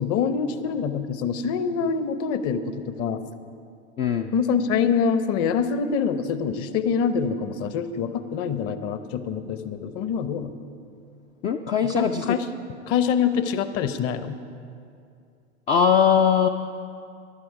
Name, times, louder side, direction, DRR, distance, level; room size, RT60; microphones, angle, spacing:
voice 1, 0.0-3.2 4.3-10.5 11.8-12.5 12.9-14.4, left 6 dB, 40° left, 11 dB, 0.9 m, -25 dB
voice 2, 4.0-4.3 11.4-12.2 15.7-16.5, left 7 dB, 20° left, 6 dB, 0.3 m, -20 dB
15.0 x 11.0 x 4.8 m, 2.5 s
figure-of-eight pair, 85°, 37 cm